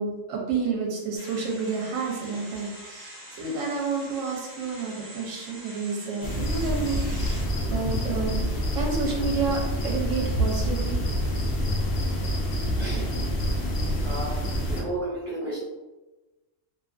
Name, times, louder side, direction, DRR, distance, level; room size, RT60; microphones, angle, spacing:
voice 1, 0.0-11.0, right 4 dB, 85° right, -1 dB, 1.0 m, -30 dB
sound 1, 1.2-7.5, right 1 dB, 15° right, 0.5 m, -44 dB
sound 2, 6.2-14.8, equal, 60° left, 0.7 m, -27 dB
voice 2, 12.7-13.1 14.0-15.6, right 1 dB, 60° right, -10 dB, 1.2 m, -33 dB
2.7 x 2.3 x 2.4 m, 1.1 s
omnidirectional pair, 1.3 m